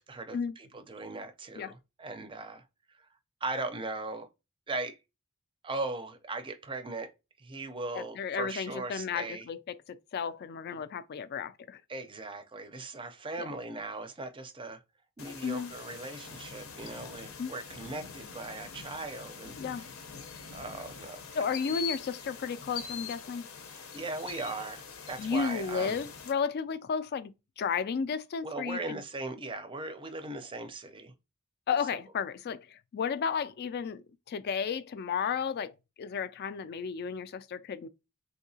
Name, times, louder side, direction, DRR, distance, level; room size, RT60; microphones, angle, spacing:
voice 1, 0.0-2.6 3.4-4.3 4.7-5.0 5.6-7.1 7.4-9.5 11.9-14.8 15.2-19.9 20.5-21.6 23.7-26.0 28.4-31.1 31.9-32.0, right 2 dB, 25° right, 0.5 m, -39 dB
voice 2, 7.9-11.8 13.4-13.5 15.4-15.7 17.4-17.5 19.6-19.8 21.3-23.5 25.2-27.3 27.6-29.0 31.7-35.7 36.0-37.9, left 6 dB, 50° left, 0.3 m, -33 dB
sound 1, 15.2-26.3, left 6 dB, 75° left, 0.7 m, -44 dB
3.6 x 2.8 x 2.7 m
head